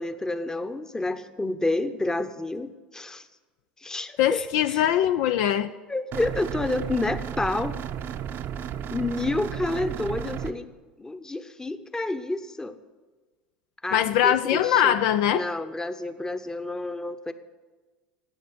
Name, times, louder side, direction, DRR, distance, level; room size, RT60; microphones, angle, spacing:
voice 1, 0.0-3.2 3.8-4.8 5.9-7.8 8.9-10.7 11.0-12.8 13.8-15.0 15.3-17.3, left 2 dB, 10° left, 11 dB, 0.9 m, -29 dB
voice 2, 4.2-5.7 13.9-15.5, left 11 dB, 60° left, 11 dB, 0.4 m, -22 dB
sound 1, 6.1-10.5, right 9 dB, 45° right, 0.8 m, -33 dB
13.5 x 9.2 x 7.9 m, 1.3 s
figure-of-eight pair, 75°, 5 cm